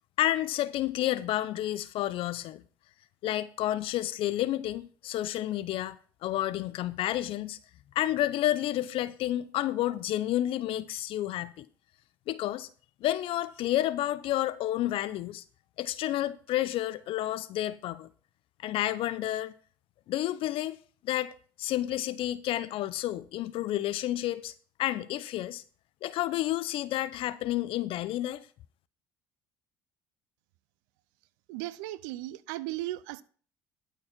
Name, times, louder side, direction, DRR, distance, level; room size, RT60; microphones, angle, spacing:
voice 1, 0.2-2.6 3.2-6.0 6.2-7.6 7.9-11.7 12.3-12.7 13.0-15.4 15.8-18.1 18.6-19.5 20.1-20.8 21.0-21.3 21.6-24.5 24.8-25.6 26.0-28.5, left 14 dB, 65° left, 0.6 m, -30 dB
voice 2, 31.5-33.2, right 16 dB, 80° right, 0.5 m, -36 dB
12.0 x 4.7 x 5.9 m
hypercardioid pair, 65°, 10 cm